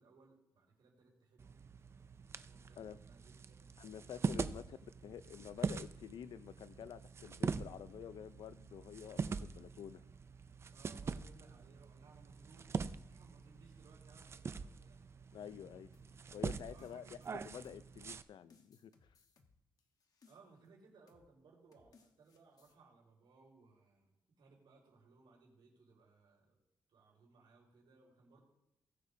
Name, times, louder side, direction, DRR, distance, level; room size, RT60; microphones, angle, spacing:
voice 1, 0.0-1.6 2.5-3.7 10.7-15.1 16.7-17.7 20.2-24.1 24.4-26.6 26.9-28.4, right 4 dB, 85° right, -3 dB, 4.4 m, -64 dB
sound 1, 1.4-18.2, right 5 dB, 35° right, 0.4 m, -44 dB
voice 2, 3.8-4.8 5.0-10.0 15.3-15.9 16.3-17.0 17.4-18.9, left 9 dB, 75° left, 14 dB, 0.5 m, -49 dB
sound 2, 15.9-18.1 18.5-20.7 21.1-21.3 21.7-22.8, left 4 dB, 50° left, 1.2 m, -69 dB
20.0 x 8.2 x 2.7 m, 0.84 s
wide cardioid pair, 160°, 8 cm